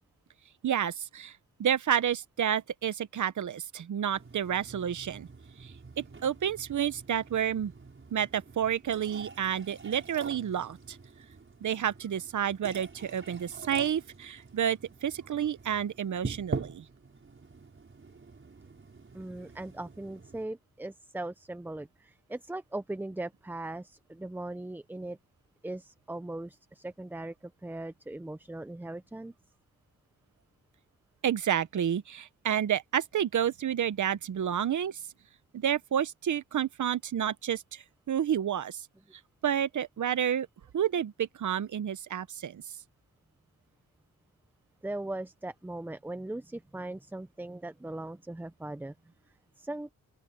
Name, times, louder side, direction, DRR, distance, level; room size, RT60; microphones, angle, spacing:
voice 1, 0.6-1.3 1.6-5.3 5.6-5.7 6.0-7.7 8.1-11.0 11.6-16.8 31.2-35.0 35.5-38.8 39.4-40.5 40.7-42.6, right 9 dB, 60° right, 1.0 m, -30 dB
sound 1, 4.1-20.4, right 4 dB, 35° right, 5.7 m, -45 dB
voice 2, 19.1-25.2 25.6-27.3 27.6-29.3 44.8-48.9 49.6-49.9, right 2 dB, 5° right, 0.5 m, -39 dB
open air
cardioid pair, 100°, 34 cm